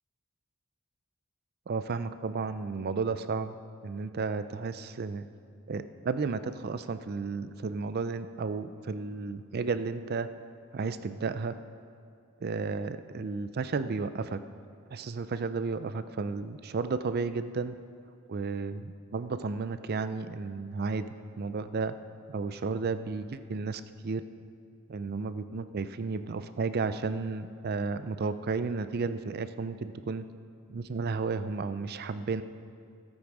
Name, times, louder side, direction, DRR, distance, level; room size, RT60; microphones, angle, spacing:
voice 1, 1.7-3.5 3.8-5.3 5.7-10.3 10.7-11.5 12.4-14.4 14.9-17.7 18.3-21.0 21.4-22.0 22.3-24.2 24.9-30.3 30.7-32.4, right 4 dB, 45° right, 12 dB, 0.4 m, -33 dB
17.5 x 6.2 x 4.8 m, 2.3 s
head